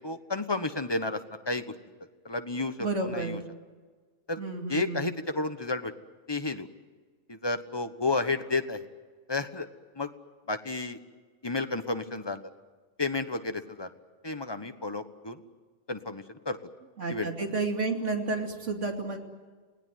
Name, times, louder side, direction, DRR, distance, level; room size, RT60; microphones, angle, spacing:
voice 1, 0.0-1.7 2.2-2.7 3.0-3.4 4.3-4.4 4.7-5.9 6.3-6.7 7.3-8.8 9.3-9.7 10.0-10.1 10.5-11.0 11.4-12.4 13.0-13.9 14.2-15.4 15.9-16.6 17.1-17.3, left 3 dB, 20° left, 8 dB, 1.2 m, -31 dB
voice 2, 2.8-3.4 4.4-5.1 17.0-19.2, right 3 dB, 65° right, 2 dB, 3.1 m, -31 dB
28.5 x 18.5 x 9.4 m, 1.4 s
omnidirectional pair, 1.4 m